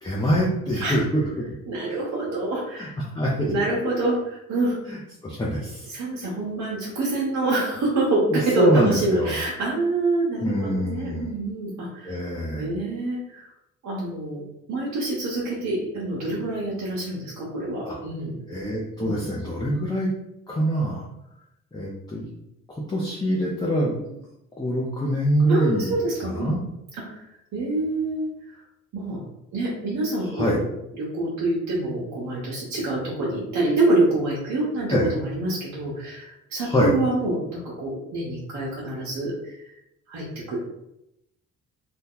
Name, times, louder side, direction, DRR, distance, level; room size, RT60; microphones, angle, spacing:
voice 1, 0.0-1.2 2.8-2.9 3.1-3.5 4.9-5.9 8.3-9.3 10.4-11.3 12.0-12.7 17.9-18.0 18.5-20.1 20.5-21.0 21.7-22.2 22.9-24.2 24.6-25.9 26.2-26.6 30.3-30.6 34.9-35.1 36.6-36.9, equal, 15° left, -5 dB, 0.7 m, -24 dB
voice 2, 1.7-2.9 3.5-4.8 5.9-12.2 12.5-13.5 13.8-14.4 14.7-18.4 19.0-19.2 25.5-26.5 26.9-27.2 27.5-28.3 28.9-29.2 29.5-30.6 31.0-39.7 40.1-40.6, right 2 dB, 65° right, -6 dB, 0.9 m, -26 dB
2.9 x 2.3 x 3.7 m, 0.83 s
cardioid pair, 90°, 30 cm